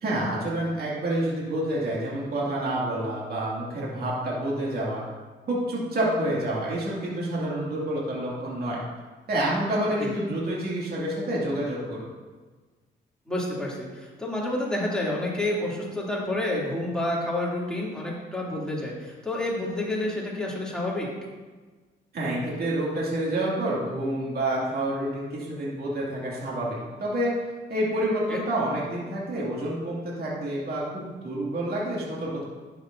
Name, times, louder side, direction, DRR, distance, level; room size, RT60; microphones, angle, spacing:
voice 1, 0.0-5.0 5.5-8.8 9.3-12.1 22.1-27.3 27.7-32.4, right 1 dB, 50° right, -5 dB, 2.4 m, -28 dB
voice 2, 13.3-21.1 28.3-28.4, left 1 dB, 5° left, -5 dB, 2.8 m, -29 dB
11.0 x 7.2 x 2.7 m, 1.3 s
cardioid pair, 90°, 20 cm